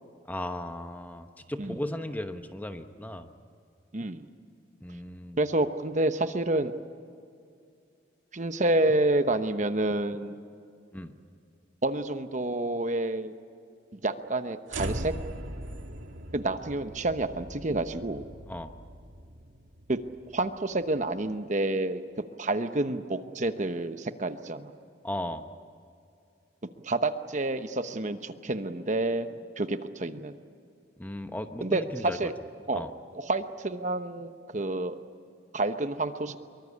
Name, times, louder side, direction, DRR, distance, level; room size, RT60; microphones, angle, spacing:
voice 1, 0.3-3.3 4.8-5.4 10.9-11.1 18.5-18.7 25.0-25.4 31.0-32.3 32.7-32.9, left 1 dB, 10° left, 7 dB, 1.0 m, -36 dB
voice 2, 3.9-4.2 5.4-6.7 8.3-10.4 11.8-13.3 13.9-15.1 16.3-18.2 19.9-20.0 20.3-22.0 22.4-24.7 26.8-29.3 29.6-30.4 31.6-32.3 32.7-32.9 33.1-35.0 35.5-36.4, right 2 dB, 40° right, 9 dB, 1.0 m, -29 dB
sound 1, 14.7-21.0, right 1 dB, 90° right, 2.0 m, -40 dB
24.5 x 23.5 x 8.5 m, 2.4 s
head